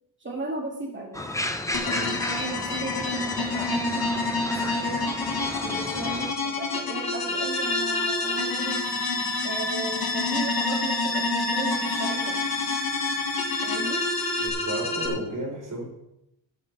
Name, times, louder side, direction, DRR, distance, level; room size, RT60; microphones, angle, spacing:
voice 1, 0.2-1.3 1.8-5.1 5.6-8.9 9.4-12.5 13.6-14.1, right 2 dB, 25° right, 0 dB, 2.4 m, -35 dB
sound 1, 1.1-6.3, left 1 dB, 5° left, 0.6 m, -33 dB
sound 2, 1.7-15.1, left 3 dB, 50° left, 1.9 m, -29 dB
sound 3, 7.3-14.5, left 2 dB, 35° left, 1.8 m, -31 dB
voice 2, 14.4-15.8, right 1 dB, 40° right, -2 dB, 4.9 m, -33 dB
12.5 x 5.8 x 6.8 m, 0.83 s
wide cardioid pair, 180°, 47 cm